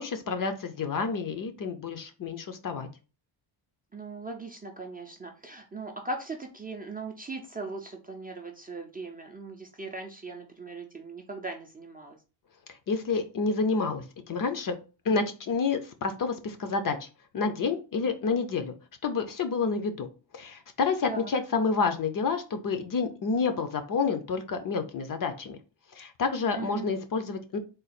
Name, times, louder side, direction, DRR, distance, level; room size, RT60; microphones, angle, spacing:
voice 1, 0.0-2.9 12.9-14.8 15.1-17.1 17.3-18.7 19.0-20.1 20.3-25.6 25.9-27.6, left 4 dB, 45° left, 8 dB, 0.6 m, -29 dB
voice 2, 3.9-12.2 21.1-21.3 26.5-26.9, right 3 dB, 20° right, 2 dB, 0.4 m, -39 dB
3.9 x 2.3 x 4.1 m, 0.32 s
wide cardioid pair, 165°, 48 cm